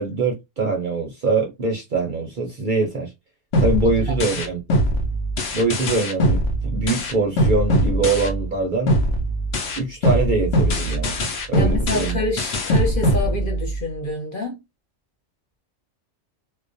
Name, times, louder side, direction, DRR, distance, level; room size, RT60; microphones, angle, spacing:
voice 1, 0.0-3.1 3.6-4.6 5.5-8.9 9.8-12.2, right 3 dB, 55° right, 0.6 m, -23 dB
sound 1, 3.5-8.6 8.9-13.9, right 1 dB, 75° left, 0.9 m, -22 dB
voice 2, 11.5-14.6, left 3 dB, 50° left, 1.0 m, -27 dB
2.2 x 2.1 x 2.5 m
omnidirectional pair, 1.2 m